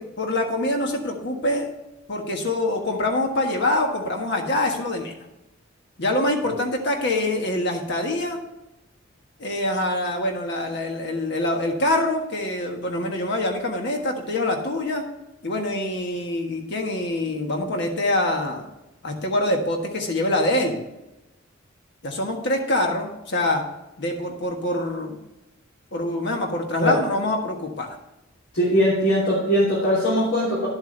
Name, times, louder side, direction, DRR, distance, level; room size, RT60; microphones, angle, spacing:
voice 1, 0.0-1.7 2.1-5.1 6.0-8.4 9.4-15.0 15.4-18.7 19.0-20.8 22.0-23.6 24.0-25.2 25.9-28.0, left 1 dB, 60° left, 2 dB, 1.5 m, -25 dB
voice 2, 28.5-30.7, equal, 80° left, -8 dB, 3.0 m, -20 dB
11.0 x 8.0 x 3.3 m, 0.97 s
head